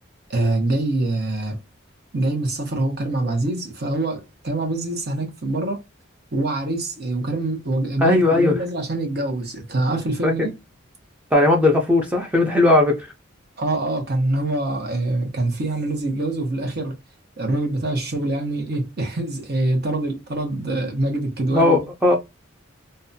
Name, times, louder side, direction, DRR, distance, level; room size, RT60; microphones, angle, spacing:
voice 1, 0.3-1.6 2.1-5.8 6.3-10.5 13.6-17.0 17.4-21.8, right 2 dB, 50° right, 0.8 m, -24 dB
voice 2, 8.0-8.5 10.2-10.5 11.3-13.1 21.5-22.1, left 2 dB, 5° right, 0.4 m, -17 dB
2.6 x 2.2 x 2.6 m
head